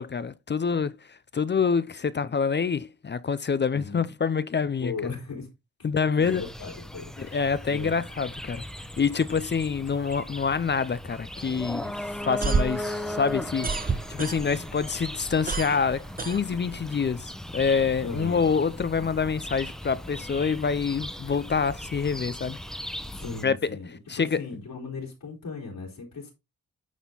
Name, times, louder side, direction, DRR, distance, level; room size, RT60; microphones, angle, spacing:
voice 1, 0.0-5.1 5.8-6.4 7.2-8.6 9.0-13.7 14.1-22.6 23.4-23.6 24.1-24.4, left 5 dB, 30° left, 0.5 m, -26 dB
voice 2, 3.7-4.1 4.8-5.5 6.2-8.0 18.0-18.5 23.1-26.3, left 4 dB, 70° left, 3.4 m, -37 dB
sound 1, 6.2-23.4, left 1 dB, ahead, 1.0 m, -38 dB
sound 2, 12.2-14.8 15.1-17.0, right 4 dB, 25° right, 0.7 m, -29 dB
9.3 x 4.3 x 3.9 m
cardioid pair, 90°, 35 cm